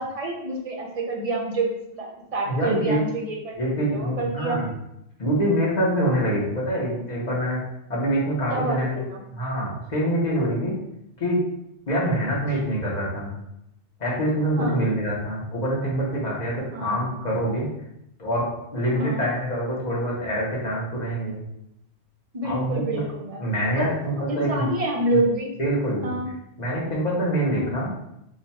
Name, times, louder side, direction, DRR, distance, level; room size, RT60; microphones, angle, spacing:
voice 1, 0.0-3.6 3.9-4.6 8.5-9.2 14.6-14.8 16.7-17.0 18.9-19.2 22.3-23.4 23.8-23.9 24.3-25.5 26.0-26.3 27.5-27.8, right 1 dB, 40° right, -1 dB, 0.6 m, -27 dB
voice 2, 2.5-3.0 3.6-4.7 5.2-7.6 7.9-9.0 9.3-10.7 11.2-11.4 11.9-13.3 14.0-17.7 18.2-18.4 18.7-21.4 22.4-23.0 23.4-24.7 25.6-26.2 26.6-27.9, equal, 45° left, -5 dB, 1.1 m, -25 dB
3.0 x 2.2 x 4.1 m, 0.82 s
omnidirectional pair, 1.1 m